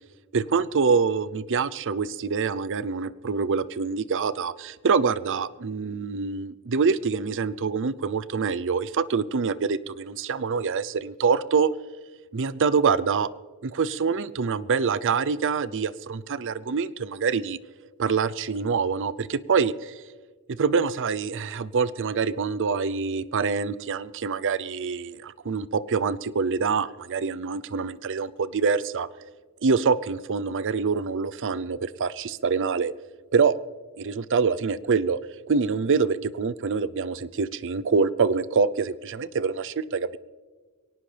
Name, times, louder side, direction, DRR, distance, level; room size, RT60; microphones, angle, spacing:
voice 1, 0.3-11.7 12.3-13.3 13.6-17.6 18.0-19.9 20.5-29.1 29.6-32.9 33.3-33.6 34.0-35.2 35.5-40.2, right 5 dB, 60° right, 17 dB, 0.5 m, -25 dB
23.0 x 18.5 x 3.4 m, 1.4 s
head